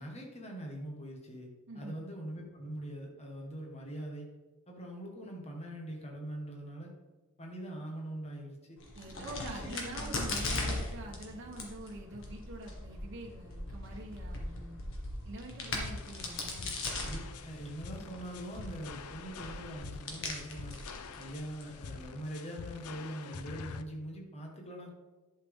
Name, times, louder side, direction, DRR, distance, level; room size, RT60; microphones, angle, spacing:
voice 1, 0.0-1.5 1.8-4.3 4.7-6.9 7.4-8.6 9.2-10.2 17.0-20.8 21.1-24.9, right 1 dB, 30° left, 0 dB, 1.6 m, -43 dB
voice 2, 1.7-2.0 8.9-14.8 15.2-16.8, right 1 dB, 55° right, -1 dB, 1.1 m, -45 dB
Crack, 8.8-22.0, left 2 dB, 65° left, 1.7 m, -40 dB
sound 1, 15.8-23.8, left 5 dB, 85° left, 0.5 m, -46 dB
11.0 x 5.8 x 3.6 m, 1.3 s
head